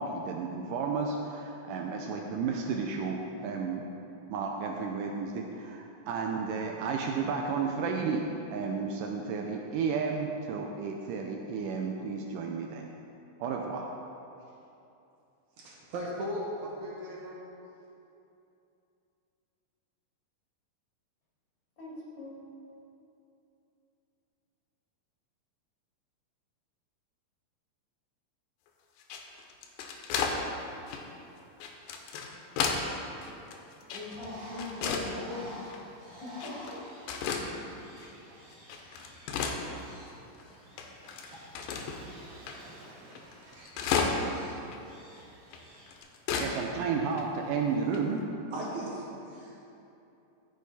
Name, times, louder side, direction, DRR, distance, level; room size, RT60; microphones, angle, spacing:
voice 1, 0.0-3.9 4.3-8.2 8.5-12.9 13.4-13.9 46.4-48.2, right 5 dB, 80° right, 1 dB, 2.0 m, -32 dB
voice 2, 15.6-17.4 48.5-49.6, equal, 65° right, -4 dB, 2.3 m, -37 dB
voice 3, 21.8-22.4 33.9-35.5 36.0-36.8, left 2 dB, 50° left, -8 dB, 3.8 m, -41 dB
sound 1, 29.0-30.4 30.9-31.0 31.6-32.9 33.2-34.3 34.6-35.1 35.6-35.8 36.4-36.8 37.1-37.5 38.0-38.1 38.5-40.1 40.4-40.5 40.8-42.0 42.5-42.6 42.8-42.9 43.1-44.4 44.7-44.8 45.5-46.5 46.8-46.9 47.1-47.2 47.9-48.2, left 6 dB, 90° left, 2.5 m, -33 dB
Bird, 34.0-46.0, equal, 45° right, 2.8 m, -50 dB
13.5 x 6.4 x 4.2 m, 2.8 s
omnidirectional pair, 4.1 m